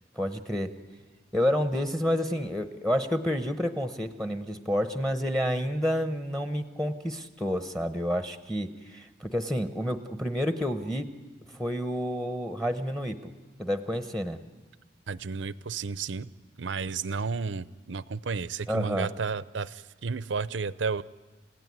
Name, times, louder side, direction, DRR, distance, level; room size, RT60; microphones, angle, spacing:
voice 1, 0.2-0.7 1.3-11.1 11.6-13.3 13.6-14.4 18.7-19.1, equal, 5° left, 9 dB, 1.0 m, -29 dB
voice 2, 15.1-16.3 16.6-21.0, right 4 dB, 85° right, 17 dB, 0.7 m, -32 dB
30.0 x 16.5 x 9.5 m, 1.4 s
head